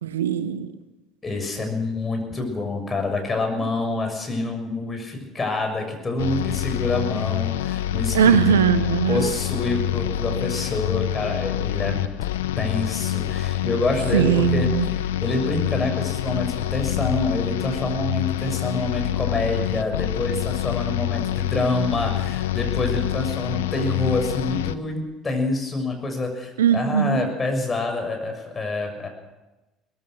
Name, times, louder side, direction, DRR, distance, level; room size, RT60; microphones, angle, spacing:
voice 1, 0.0-0.7 8.1-9.3 14.1-14.9 26.6-27.3, right 8 dB, 80° right, 13 dB, 1.0 m, -20 dB
voice 2, 1.2-8.4 9.1-12.1 12.6-29.1, left 2 dB, 25° left, 4 dB, 6.5 m, -27 dB
sound 1, 6.2-24.8, left 13 dB, 75° left, 0.8 m, -26 dB
23.5 x 19.5 x 6.5 m, 1.1 s
hypercardioid pair, 60°, 0 cm